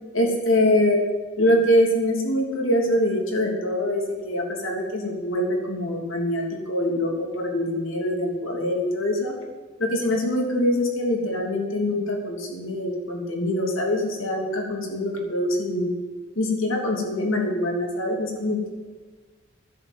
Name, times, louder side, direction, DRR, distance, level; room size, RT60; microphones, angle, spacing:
voice 1, 0.1-1.0 1.4-9.3 9.8-15.9 16.3-18.7, left 1 dB, 80° left, 1 dB, 3.1 m, -24 dB
10.5 x 8.2 x 9.1 m, 1.4 s
head